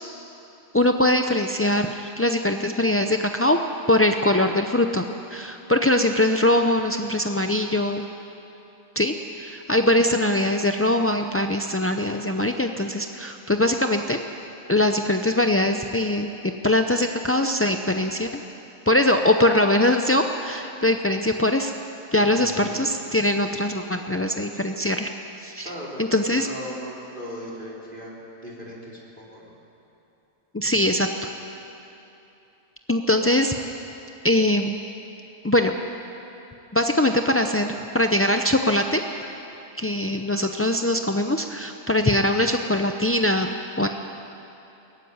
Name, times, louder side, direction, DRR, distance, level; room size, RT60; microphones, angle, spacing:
voice 1, 0.7-3.6 3.9-8.1 9.0-14.2 14.7-16.3 16.6-18.4 18.9-21.7 22.1-25.1 25.4-25.7 26.0-26.5 30.5-31.1 32.9-33.5 34.2-34.7 35.4-35.8 36.7-39.3 39.8-43.5 43.8-43.9, left 1 dB, 20° left, 5 dB, 0.3 m, -22 dB
voice 2, 22.4-22.9 25.6-28.2 28.4-29.6, equal, 40° right, -4 dB, 4.0 m, -38 dB
21.0 x 15.0 x 9.5 m, 2.9 s
omnidirectional pair, 1.4 m